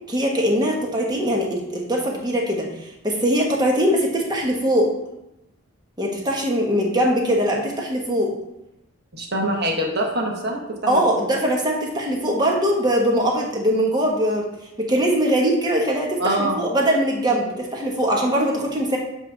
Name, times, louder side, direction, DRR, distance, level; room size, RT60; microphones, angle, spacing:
voice 1, 0.1-4.9 6.0-8.3 10.9-14.5 14.8-19.0, equal, 20° right, -1 dB, 1.1 m, -21 dB
voice 2, 9.1-11.2 16.2-16.6, right 1 dB, 50° right, 0 dB, 1.2 m, -24 dB
8.2 x 3.1 x 5.2 m, 0.87 s
head